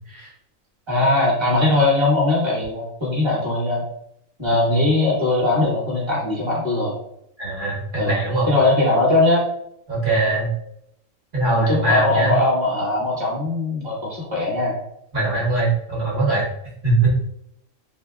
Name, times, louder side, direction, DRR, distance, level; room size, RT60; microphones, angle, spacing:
voice 1, 0.9-3.8 4.4-6.9 8.0-8.1 8.5-9.4 11.5-14.7, left 2 dB, 25° right, -5 dB, 1.0 m, -20 dB
voice 2, 7.4-8.5 9.9-10.5 11.3-12.4 15.1-16.4 16.8-17.1, right 2 dB, 45° right, -6 dB, 1.2 m, -21 dB
3.2 x 2.7 x 2.3 m, 0.75 s
omnidirectional pair, 1.3 m